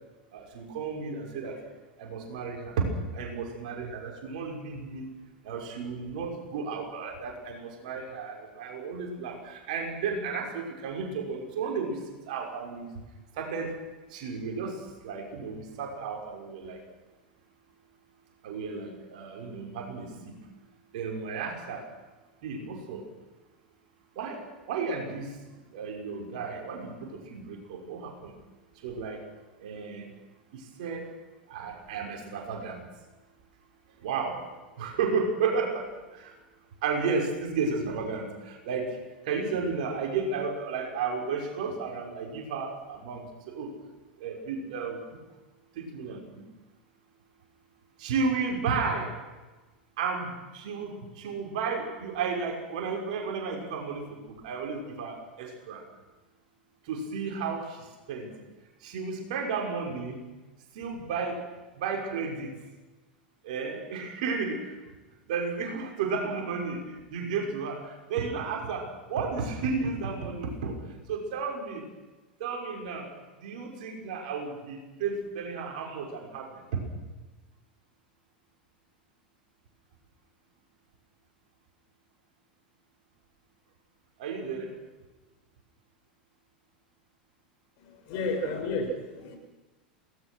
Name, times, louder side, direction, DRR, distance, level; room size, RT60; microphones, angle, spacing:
voice 1, 0.3-1.6 2.0-5.1 5.4-12.0 12.3-12.9 13.4-13.7 14.1-16.8 18.4-20.4 20.9-21.8 22.4-23.0 24.2-24.4 24.7-25.3 25.7-28.3 28.8-29.2 29.6-30.1 30.5-31.1 31.5-32.8 34.0-34.4 34.8-35.9 36.1-36.3 36.8-39.0 39.2-43.7 44.2-45.0 45.8-46.4 48.0-49.1 50.0-54.2 54.4-55.8 56.9-58.4 58.8-60.2 60.7-61.4 61.7-62.5 63.4-64.8 65.3-66.8 67.1-70.8 71.1-71.8 72.4-73.1 73.4-76.8 84.2-84.7, right 5 dB, 55° right, 1 dB, 6.0 m, -33 dB
voice 2, 87.8-89.4, left 2 dB, 50° left, 2 dB, 7.1 m, -32 dB
28.0 x 19.0 x 6.4 m, 1.2 s
figure-of-eight pair, 85°, 5 cm